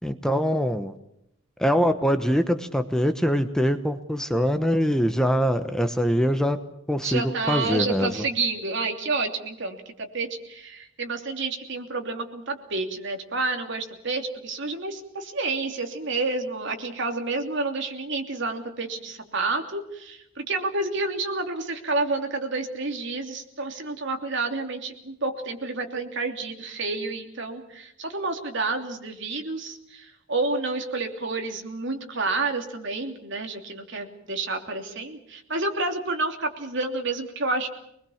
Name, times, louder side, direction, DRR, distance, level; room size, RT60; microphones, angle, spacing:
voice 1, 0.0-0.9 1.6-6.6 6.9-8.2, equal, 5° left, 8 dB, 1.0 m, -23 dB
voice 2, 7.0-37.7, right 3 dB, 60° right, 4 dB, 3.0 m, -29 dB
24.0 x 21.0 x 7.2 m, 0.78 s
head